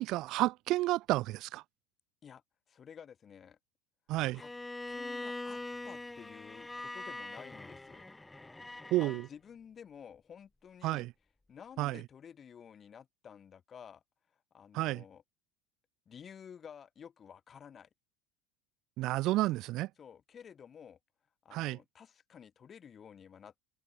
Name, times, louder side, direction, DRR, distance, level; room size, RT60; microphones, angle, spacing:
voice 1, 0.0-1.6 4.1-4.4 8.9-9.2 10.8-11.1 11.8-12.0 14.7-15.0 19.0-19.9 21.5-21.8, right 17 dB, 50° right, 0.9 m, -31 dB
voice 2, 2.7-3.6 4.3-4.5 4.9-8.1 9.0-11.0 11.5-14.0 14.5-15.2 16.1-17.9 20.0-21.0 21.4-23.6, left 7 dB, 30° left, 6.5 m, -52 dB
Bowed string instrument, 4.4-9.3, left 2 dB, 10° left, 1.9 m, -43 dB
open air
hypercardioid pair, 75°, 0 cm